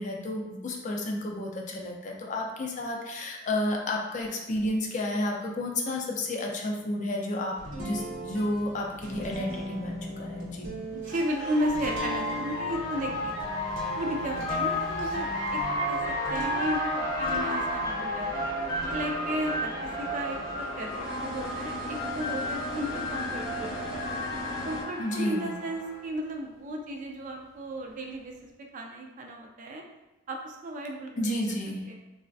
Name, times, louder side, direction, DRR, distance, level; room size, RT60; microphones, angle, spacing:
voice 1, 0.0-10.7 25.0-25.5 31.2-31.8, left 1 dB, 40° left, 0 dB, 0.4 m, -31 dB
sound 1, 7.6-18.2 18.6-20.9, right 1 dB, 70° right, 0.8 m, -40 dB
sound 2, 8.9-9.0 10.4-26.0, left 1 dB, 20° left, 0.7 m, -32 dB
voice 2, 10.9-13.4 14.0-15.6 15.9-18.4 18.9-24.1 24.6-29.8 30.3-31.6 31.9-32.0, right 1 dB, 40° right, 1 dB, 0.3 m, -34 dB
sound 3, 11.4-24.8, left 1 dB, 80° left, 0.7 m, -41 dB
3.2 x 2.0 x 2.5 m, 0.99 s
head